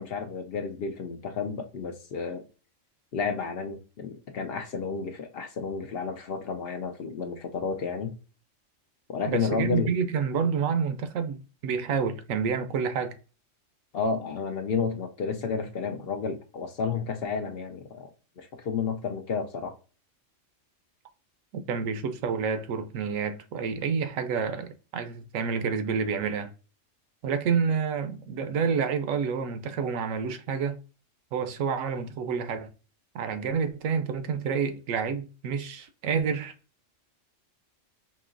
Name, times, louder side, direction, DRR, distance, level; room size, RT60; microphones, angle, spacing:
voice 1, 0.0-2.5 3.1-8.1 9.1-9.9 13.9-18.1 18.4-19.8, left 5 dB, 60° left, 0.7 m, -31 dB
voice 2, 9.3-13.2 21.5-26.5 27.2-30.8 31.3-32.7 33.1-36.5, right 6 dB, 90° right, 1.0 m, -29 dB
5.2 x 2.8 x 2.5 m
omnidirectional pair, 1.3 m